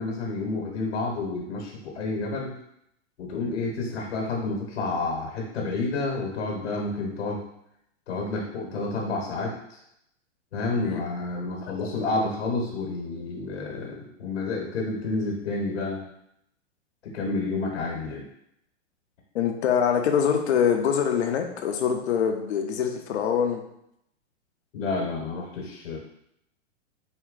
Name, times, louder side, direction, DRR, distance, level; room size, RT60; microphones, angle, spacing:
voice 1, 0.0-2.6 3.2-7.4 8.1-9.8 10.5-16.0 17.0-18.2 24.7-26.0, left 3 dB, 80° left, -2 dB, 1.3 m, -30 dB
voice 2, 19.3-23.6, left 7 dB, 65° left, 4 dB, 0.8 m, -24 dB
4.5 x 2.3 x 3.8 m, 0.76 s
hypercardioid pair, 120°, 35 cm